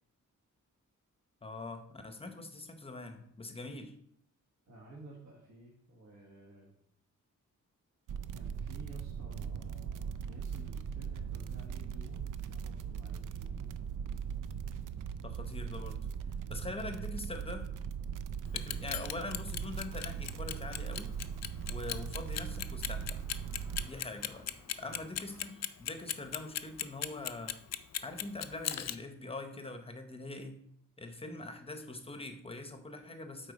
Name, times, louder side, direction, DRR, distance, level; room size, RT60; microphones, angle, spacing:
voice 1, 1.4-3.9 15.2-16.0 16.5-17.7 18.5-21.1 21.7-23.2 23.8-24.5 24.8-27.6 28.0-30.6 31.0-33.5, left 2 dB, 20° left, 7 dB, 0.7 m, -43 dB
voice 2, 4.7-6.8 8.3-13.7 24.8-25.0, right 2 dB, 60° right, -4 dB, 1.5 m, -53 dB
sound 1, 8.1-23.9, right 7 dB, 85° right, 0.5 m, -39 dB
Clock, 18.5-28.9, left 10 dB, 55° left, 0.4 m, -37 dB
sound 2, 19.6-25.5, equal, 10° right, 1.2 m, -59 dB
8.1 x 4.3 x 5.2 m, 0.73 s
wide cardioid pair, 180°, 31 cm